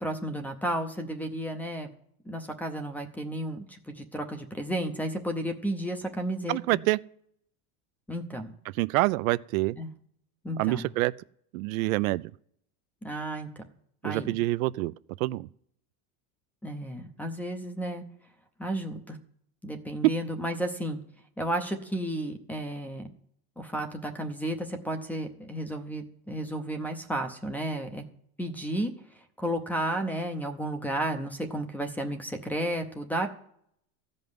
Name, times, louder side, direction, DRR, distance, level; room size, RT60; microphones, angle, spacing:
voice 1, 0.0-1.9 2.3-6.8 8.1-8.5 9.8-9.9 10.4-10.9 13.0-13.6 14.0-14.4 16.6-18.0 18.6-19.2 19.6-21.0 21.4-23.1 23.6-28.0 28.4-28.9 29.4-33.3, right 1 dB, 5° left, 0.6 m, -32 dB
voice 2, 6.5-7.0 8.7-9.8 10.6-11.1 11.5-12.3 14.0-14.9 15.2-15.5, right 20 dB, 75° right, 0.5 m, -26 dB
14.5 x 5.4 x 9.5 m
supercardioid pair, 170°, 43 cm